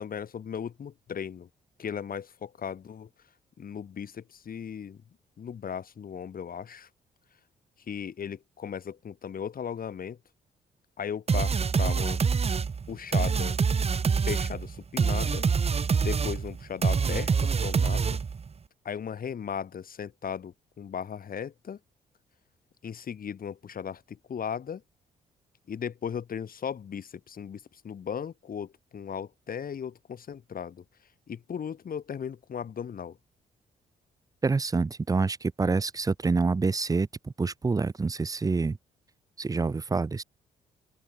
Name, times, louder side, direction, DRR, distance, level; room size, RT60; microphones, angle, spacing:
voice 1, 0.0-1.5 1.8-3.1 3.6-5.0 5.4-6.9 7.9-10.2 11.0-12.2 12.9-13.6 14.2-15.5 16.0-18.2 18.8-21.8 22.8-24.8 25.7-30.8 31.3-33.2, left 7 dB, 60° left, 3.6 m, -36 dB
sound 1, 11.3-18.5, right 5 dB, 35° right, 0.9 m, -26 dB
voice 2, 34.4-38.8 39.4-40.2, right 4 dB, 20° right, 0.5 m, -27 dB
open air
supercardioid pair, 55°, 17 cm